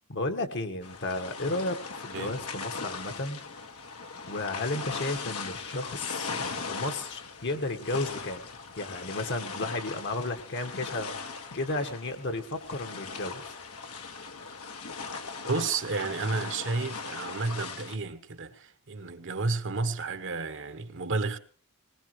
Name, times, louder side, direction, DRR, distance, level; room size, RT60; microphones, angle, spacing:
voice 1, 0.1-3.4 4.2-6.3 6.7-8.4 8.8-13.6, left 2 dB, 55° left, 1.5 m, -33 dB
sound 1, 0.8-18.0, left 4 dB, 85° left, 1.9 m, -39 dB
voice 2, 2.1-2.4 15.5-21.4, right 3 dB, 60° right, 1.2 m, -31 dB
20.5 x 19.5 x 3.2 m
head